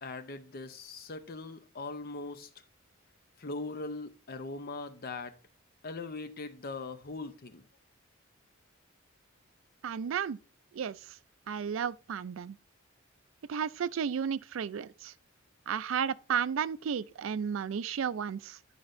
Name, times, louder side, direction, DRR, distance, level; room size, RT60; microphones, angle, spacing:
voice 1, 0.0-2.5 3.4-5.4 5.8-7.6, left 3 dB, 50° left, 0.7 m, -40 dB
voice 2, 9.8-10.4 10.7-11.2 11.5-12.6 13.5-15.1 15.7-18.6, right 7 dB, 70° right, 0.4 m, -33 dB
10.5 x 5.1 x 2.6 m
head